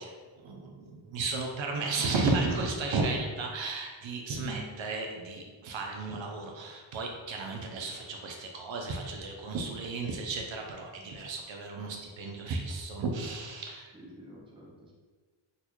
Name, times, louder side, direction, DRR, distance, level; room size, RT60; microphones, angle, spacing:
voice 1, 0.0-13.9, right 3 dB, 70° right, 1 dB, 0.6 m, -34 dB
voice 2, 4.3-4.7 13.9-14.9, right 1 dB, 10° right, -3 dB, 0.5 m, -48 dB
3.9 x 2.2 x 3.0 m, 1.4 s
wide cardioid pair, 135°, 48 cm